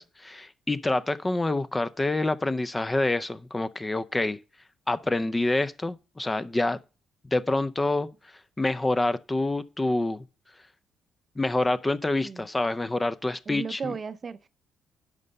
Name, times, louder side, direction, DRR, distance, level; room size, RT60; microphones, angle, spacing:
voice 1, 0.0-4.4 4.9-6.8 7.3-8.1 8.6-10.2 11.4-13.9, left 2 dB, 20° left, 0.5 m, -27 dB
voice 2, 13.5-14.5, right 5 dB, 40° right, 0.6 m, -35 dB
11.0 x 5.4 x 5.6 m
cardioid pair, 90°, 0 cm